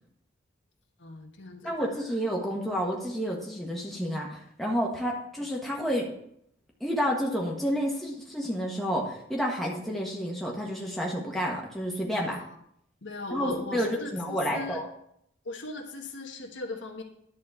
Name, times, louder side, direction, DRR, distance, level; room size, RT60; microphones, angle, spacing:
voice 1, 1.0-1.7 12.3-12.6 13.0-14.8 15.4-17.0, left 2 dB, 70° left, 2 dB, 1.4 m, -38 dB
voice 2, 1.6-6.1 6.8-12.4 13.3-14.9, equal, ahead, -3 dB, 1.4 m, -30 dB
10.5 x 4.2 x 7.1 m, 0.72 s
head